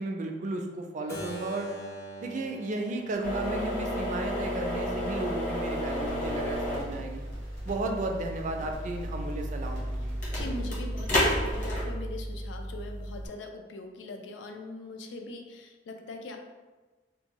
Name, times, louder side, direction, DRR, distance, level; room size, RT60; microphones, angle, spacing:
voice 1, 0.0-1.7 2.2-7.2 7.6-10.2, right 2 dB, 45° right, 3 dB, 0.3 m, -34 dB
Keyboard (musical), 1.1-6.9, right 1 dB, 15° left, 0.5 m, -45 dB
sound 1, 3.2-13.3, equal, 45° left, 1.0 m, -32 dB
sound 2, 5.7-10.7, equal, 70° left, 1.1 m, -48 dB
voice 2, 10.3-16.4, left 2 dB, 85° left, 3 dB, 0.4 m, -41 dB
2.6 x 2.2 x 2.9 m, 1.2 s
head